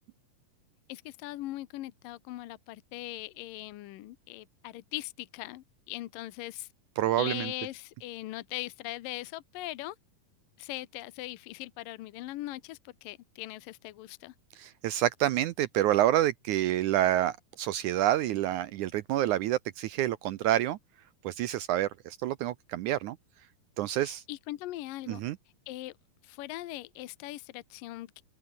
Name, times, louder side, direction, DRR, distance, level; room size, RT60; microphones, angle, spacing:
voice 1, 0.9-6.7 7.2-10.0 10.6-14.3 24.0-25.2 25.7-25.9 26.2-28.2, left 17 dB, 75° left, 2.4 m, -40 dB
voice 2, 7.0-7.5 14.6-20.8 21.2-23.2 23.8-24.2 25.1-25.4, right 13 dB, 80° right, 1.7 m, -28 dB
open air
omnidirectional pair, 4.4 m